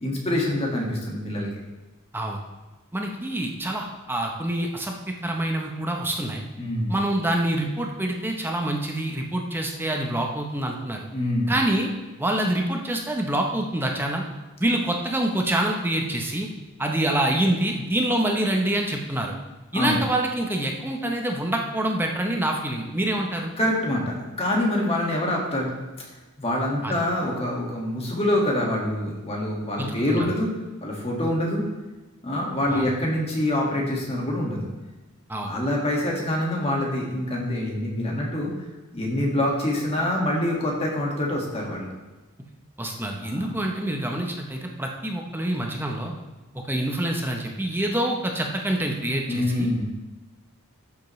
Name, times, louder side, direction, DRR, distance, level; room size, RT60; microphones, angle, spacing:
voice 1, 0.0-1.5 6.5-7.0 11.1-11.5 19.7-20.0 23.6-26.1 26.4-30.5 30.8-31.6 32.2-34.7 35.4-38.5 38.9-41.9 43.2-43.5 49.3-49.8, left 1 dB, 25° left, -1 dB, 1.8 m, -25 dB
voice 2, 2.9-6.4 6.9-11.1 11.5-11.9 12.2-14.3 14.6-16.5 16.8-19.3 19.7-23.5 26.8-26.9 29.8-30.3 32.7-32.9 35.3-35.5 42.8-46.1 46.5-49.7, right 1 dB, 10° right, 1 dB, 0.8 m, -26 dB
12.5 x 7.1 x 3.2 m, 1.2 s
head